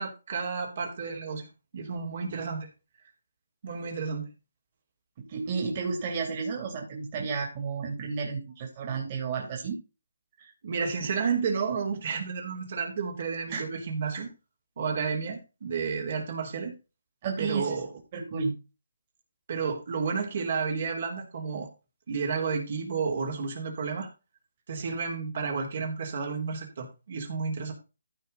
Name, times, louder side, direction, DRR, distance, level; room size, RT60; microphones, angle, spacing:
voice 1, 0.0-1.5 1.7-2.7 3.6-4.2 10.6-14.3 14.8-16.7 17.4-17.9 19.5-21.7 22.1-24.1 24.7-27.7, right 5 dB, 50° right, 1 dB, 3.1 m, -31 dB
voice 2, 5.3-9.8 10.4-10.5 13.5-13.6 17.2-17.8 18.1-18.5, right 5 dB, 30° right, 1 dB, 3.1 m, -32 dB
14.5 x 5.0 x 4.0 m, 0.30 s
hypercardioid pair, 160°, 0 cm